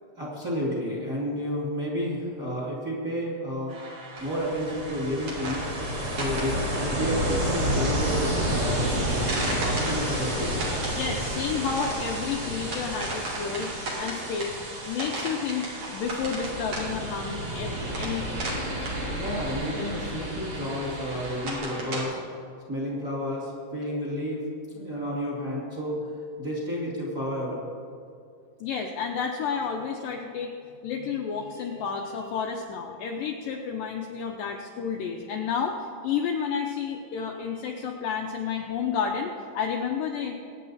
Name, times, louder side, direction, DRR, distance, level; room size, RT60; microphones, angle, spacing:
voice 1, 0.1-3.8 4.2-5.6 6.1-8.8 9.5-10.6 19.2-22.2 22.7-24.5 24.7-27.6, equal, 25° right, -5 dB, 2.6 m, -31 dB
sound 1, 3.7-22.0, right 2 dB, 45° right, 3.5 m, -37 dB
Ocean, 4.2-21.5, equal, 70° right, 0.6 m, -31 dB
voice 2, 10.9-13.7 14.0-14.6 14.9-15.7 15.9-18.4 28.6-30.5 30.8-40.3, left 6 dB, 75° left, 2 dB, 2.1 m, -31 dB
23.5 x 9.3 x 4.1 m, 2.3 s
omnidirectional pair, 4.7 m